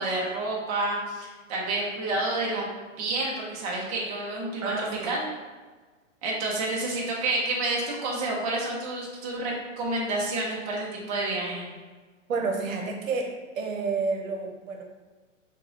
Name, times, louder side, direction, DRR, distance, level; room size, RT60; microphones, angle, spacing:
voice 1, 0.0-2.6 3.0-5.2 6.2-11.7, right 2 dB, 30° right, -4 dB, 0.9 m, -29 dB
voice 2, 4.6-5.2 12.3-14.8, right 4 dB, 85° right, 2 dB, 1.0 m, -30 dB
5.6 x 2.4 x 3.9 m, 1.4 s
hypercardioid pair, 160°, 39 cm